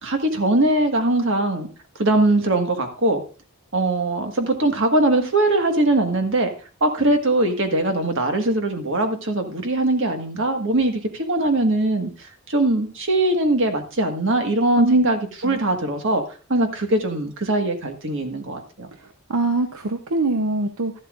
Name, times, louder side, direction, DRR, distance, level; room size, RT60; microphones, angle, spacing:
voice 1, 0.0-1.7 2.0-3.2 3.7-6.5 6.8-12.1 12.5-16.2 16.5-18.9, right 2 dB, 60° right, 5 dB, 1.6 m, -21 dB
voice 2, 14.7-15.1 15.4-15.6 19.0-21.0, right 2 dB, 80° right, 7 dB, 0.8 m, -23 dB
12.5 x 11.5 x 2.5 m, 0.36 s
head